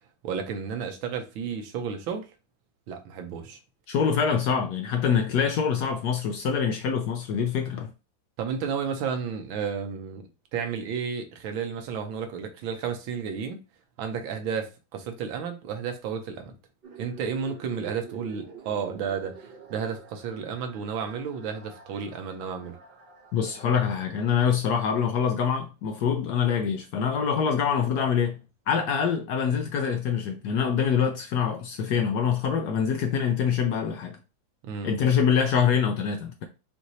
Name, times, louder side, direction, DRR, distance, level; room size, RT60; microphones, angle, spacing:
voice 1, 0.2-2.3 2.9-3.6 8.4-13.6 14.0-16.5 17.0-22.8 34.6-34.9, right 6 dB, 80° right, 1.6 m, -32 dB
voice 2, 3.9-7.9 23.3-28.4 28.7-34.2 34.8-36.4, left 7 dB, 70° left, 1.0 m, -25 dB
sound 1, 16.8-24.5, right 6 dB, 35° right, 1.0 m, -48 dB
5.5 x 2.6 x 3.0 m
omnidirectional pair, 2.2 m